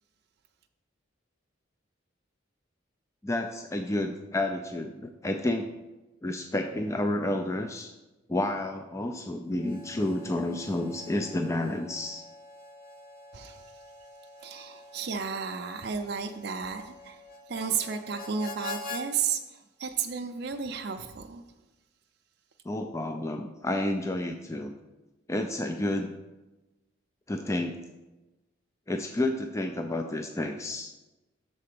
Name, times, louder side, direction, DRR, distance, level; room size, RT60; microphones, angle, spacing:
voice 1, 3.2-5.7 6.2-7.9 8.3-12.2 22.7-24.7 25.3-26.1 27.3-27.8 28.9-30.9, left 1 dB, 15° left, 5 dB, 0.3 m, -30 dB
Harmonica, 9.5-19.0, left 2 dB, 45° left, 0.9 m, -45 dB
voice 2, 13.3-13.7 14.4-17.2 17.5-21.4, right 6 dB, 55° right, 3 dB, 0.5 m, -33 dB
6.7 x 4.2 x 6.6 m, 1.1 s
head